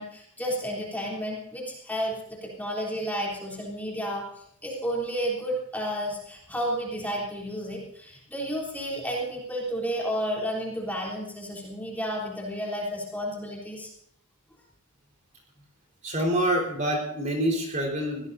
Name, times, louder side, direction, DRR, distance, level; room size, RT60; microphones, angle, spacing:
voice 1, 0.0-4.2 4.6-13.9, equal, 10° left, -3 dB, 3.3 m, -31 dB
voice 2, 16.0-18.3, right 1 dB, 35° right, 0 dB, 4.3 m, -26 dB
23.0 x 17.0 x 2.7 m, 0.70 s
head